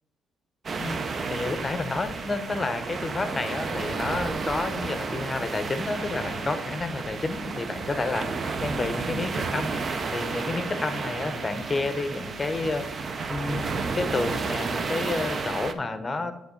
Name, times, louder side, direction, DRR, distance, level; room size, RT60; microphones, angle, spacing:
sound 1, 0.6-15.7, right 4 dB, 45° right, 0.5 m, -32 dB
voice 1, 1.3-8.2 8.6-9.7 10.1-12.9 13.3-13.7 13.9-16.3, left 3 dB, 25° left, 9 dB, 0.7 m, -30 dB
9.6 x 3.5 x 3.8 m, 0.88 s
cardioid pair, 90°, 0 cm